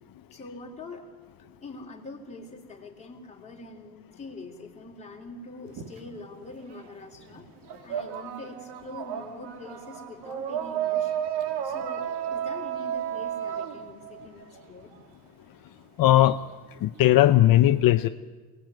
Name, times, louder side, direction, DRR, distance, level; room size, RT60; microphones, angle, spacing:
voice 1, 0.3-1.1 1.6-7.5 7.8-11.1 11.6-14.9, left 2 dB, 15° left, 0 dB, 3.8 m, -44 dB
sound 1, 5.7-6.9 7.2-15.0, right 9 dB, 80° right, 2.2 m, -33 dB
voice 2, 16.0-16.4 16.8-18.1, left 14 dB, 60° left, 8 dB, 0.8 m, -18 dB
27.5 x 20.0 x 9.3 m, 1.4 s
cardioid pair, 160°, 39 cm